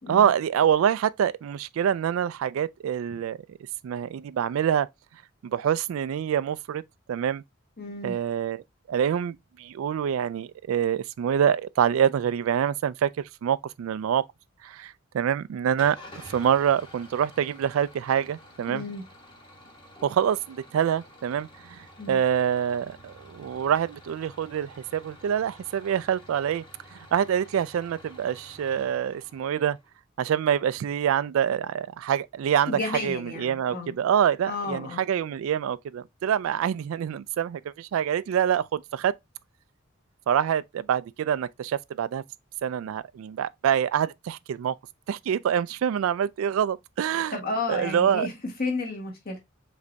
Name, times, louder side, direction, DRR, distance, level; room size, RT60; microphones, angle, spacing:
voice 1, 0.1-3.6 3.8-4.9 5.4-6.8 7.1-7.4 8.0-13.1 13.4-14.3 14.6-16.0 16.3-18.8 20.0-26.6 26.9-29.8 30.2-39.1 40.3-42.2 42.6-44.8 45.1-47.4 47.7-48.3, right 8 dB, 70° right, 0.3 m, -26 dB
voice 2, 7.8-8.2 18.7-19.0 22.0-22.2 32.7-34.0 34.5-35.0 47.3-48.3 48.6-49.4, left 3 dB, 45° left, 1.5 m, -32 dB
Engine starting / Idling, 15.8-29.9, equal, 25° left, 1.2 m, -50 dB
5.1 x 3.3 x 2.7 m
head